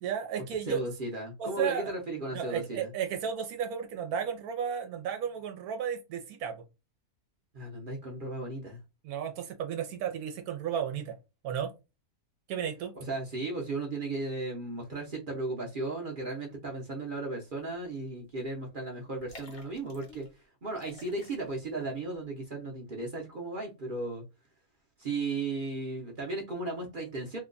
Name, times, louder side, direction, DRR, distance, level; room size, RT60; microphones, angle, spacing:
voice 1, 0.0-0.8 1.4-1.9 2.3-6.6 9.0-11.1 11.4-11.7 12.5-12.9, right 8 dB, 85° right, 1.1 m, -33 dB
voice 2, 0.7-2.9 7.5-8.8 12.9-20.3 20.6-24.2 25.0-27.4, right 2 dB, 45° right, 0.7 m, -35 dB
sound 1, 17.8-18.1 18.3-18.4 19.1-20.3 20.7-21.8 22.1-22.2, left 2 dB, 45° left, 1.0 m, -52 dB
2.9 x 2.2 x 3.8 m
omnidirectional pair, 1.6 m